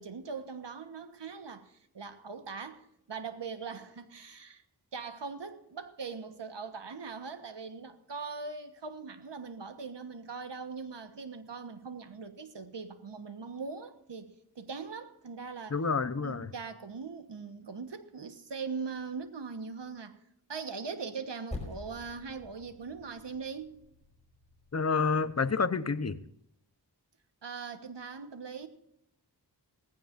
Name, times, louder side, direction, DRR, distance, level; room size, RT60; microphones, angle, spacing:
voice 1, 0.0-4.6 4.9-15.8 16.2-20.2 20.5-23.8 27.4-28.7, right 5 dB, 85° right, 1.3 m, -41 dB
voice 2, 15.7-16.5 24.7-26.2, left 4 dB, 40° left, 0.9 m, -29 dB
Percussion, 21.5-26.3, left 2 dB, 15° left, 5.4 m, -47 dB
18.5 x 15.5 x 2.6 m
wide cardioid pair, 60°, 41 cm